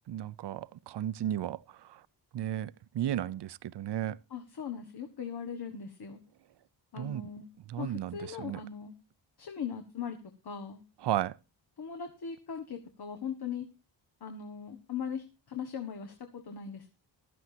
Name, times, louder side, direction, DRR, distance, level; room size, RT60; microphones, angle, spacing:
voice 1, 0.1-2.0 2.3-4.2 7.0-7.2 7.7-8.6 11.0-11.4, right 11 dB, 65° right, 0.6 m, -34 dB
voice 2, 4.3-6.2 6.9-7.5 7.8-8.9 9.4-10.2 10.4-10.8 11.8-13.7 14.2-16.9, left 7 dB, 55° left, 1.7 m, -39 dB
15.5 x 13.0 x 2.8 m
wide cardioid pair, 135°, 45 cm